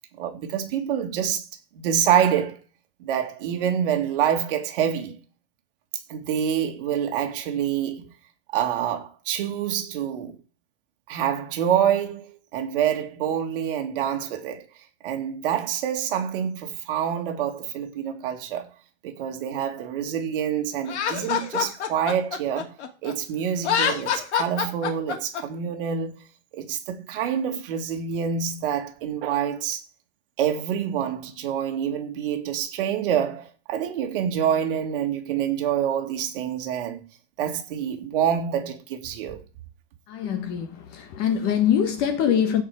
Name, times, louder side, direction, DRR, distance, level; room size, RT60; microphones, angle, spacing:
voice 1, 0.2-1.4 1.7-2.6 3.0-5.1 6.1-8.1 8.5-10.4 11.1-14.6 15.0-18.7 19.0-22.8 23.0-26.2 26.5-29.8 30.4-37.1 37.4-39.4, right 9 dB, 50° right, 2.5 m, -26 dB
Laughter, 20.9-23.1 23.6-25.4, left 8 dB, 70° left, 2.8 m, -26 dB
voice 2, 40.1-42.6, left 9 dB, 25° left, 1.3 m, -23 dB
15.5 x 5.3 x 5.1 m
supercardioid pair, 175°, 35 cm